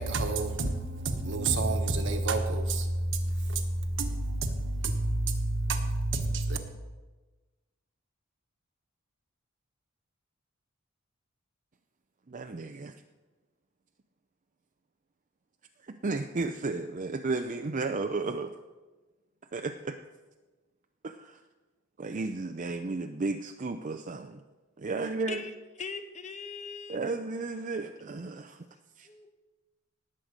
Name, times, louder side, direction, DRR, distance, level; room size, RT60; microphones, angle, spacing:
voice 1, 0.0-6.6, right 2 dB, 60° right, 6 dB, 1.3 m, -29 dB
voice 2, 12.3-12.9 15.8-18.5 19.5-20.0 21.0-21.4 22.0-24.4 24.8-25.5 26.9-28.7 29.0-29.1, right 3 dB, 40° right, 6 dB, 0.5 m, -33 dB
voice 3, 25.8-27.0 29.1-29.3, left 5 dB, 35° left, 7 dB, 1.0 m, -40 dB
19.0 x 7.7 x 5.1 m, 1.2 s
head